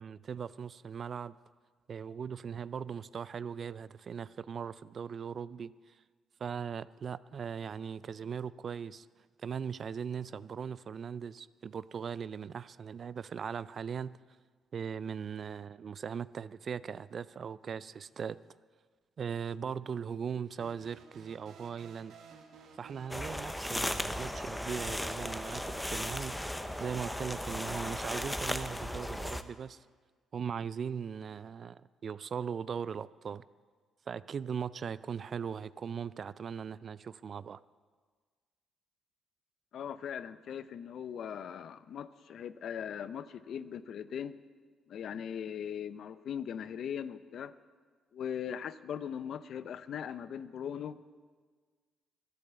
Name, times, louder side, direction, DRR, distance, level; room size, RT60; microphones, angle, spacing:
voice 1, 0.0-1.3 1.9-6.0 6.4-9.1 9.4-14.2 14.7-18.4 19.2-22.2 22.8-29.9 30.3-33.4 34.1-37.6, right 7 dB, 50° right, 18 dB, 0.4 m, -39 dB
sound 1, 20.6-27.5, right 6 dB, 75° right, 1.4 m, -55 dB
sound 2, 23.1-29.4, left 1 dB, 5° left, 0.7 m, -36 dB
voice 2, 39.7-44.4 44.9-47.5 48.1-51.0, left 8 dB, 65° left, 15 dB, 0.6 m, -39 dB
12.5 x 10.5 x 8.1 m, 1.5 s
cardioid pair, 90°, 0 cm